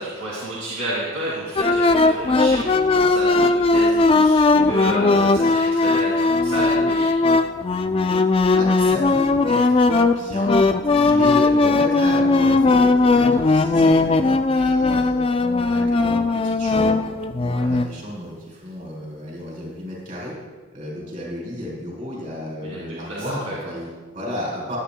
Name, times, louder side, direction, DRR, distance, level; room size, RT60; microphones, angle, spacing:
voice 1, 0.0-7.1 10.9-11.2 17.4-17.7 22.6-23.5, right 1 dB, 90° right, -6 dB, 2.3 m, -31 dB
sound 1, 1.6-17.9, left 3 dB, 25° left, 0.3 m, -18 dB
voice 2, 8.5-10.6 11.0-14.1 14.6-17.0 17.3-20.4 20.7-24.8, equal, 40° right, -4 dB, 3.6 m, -33 dB
16.5 x 10.5 x 2.2 m, 1.4 s
head